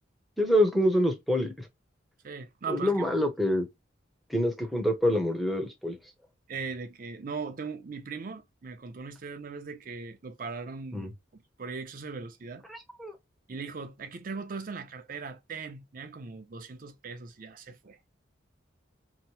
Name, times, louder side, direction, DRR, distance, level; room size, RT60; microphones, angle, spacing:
voice 1, 0.4-1.7 2.7-3.7 4.3-6.0 10.9-11.1 12.7-13.1, equal, ahead, 0.6 m, -26 dB
voice 2, 2.2-3.1 6.5-11.1 11.6-12.7 13.5-18.0, right 4 dB, 45° right, 0.5 m, -39 dB
2.8 x 2.0 x 2.9 m
head